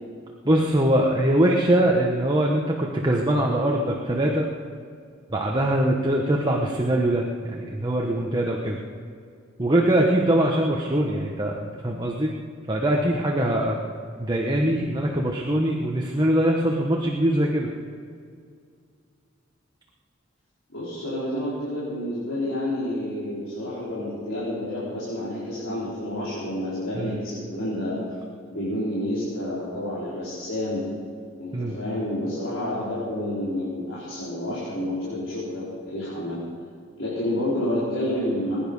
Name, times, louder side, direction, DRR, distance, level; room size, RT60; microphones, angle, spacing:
voice 1, 0.4-4.5 5.3-8.8 9.6-12.3 12.7-13.8 14.2-17.7 26.9-27.2 31.5-31.8, right 1 dB, 20° right, -1 dB, 1.2 m, -22 dB
voice 2, 20.7-28.0 28.5-30.8 31.4-36.4 37.0-38.6, left 1 dB, 75° left, -10 dB, 4.8 m, -29 dB
20.5 x 10.5 x 5.4 m, 2.2 s
head